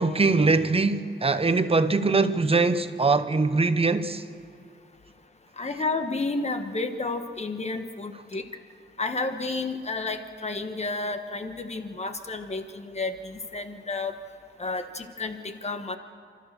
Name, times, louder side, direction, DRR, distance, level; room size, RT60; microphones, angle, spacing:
voice 1, 0.0-4.2, right 3 dB, 30° right, 0.8 m, -22 dB
voice 2, 5.6-8.5 9.0-14.1 14.6-16.0, left 3 dB, 35° left, 1.2 m, -31 dB
29.0 x 13.5 x 6.7 m
wide cardioid pair, 155°, 20 cm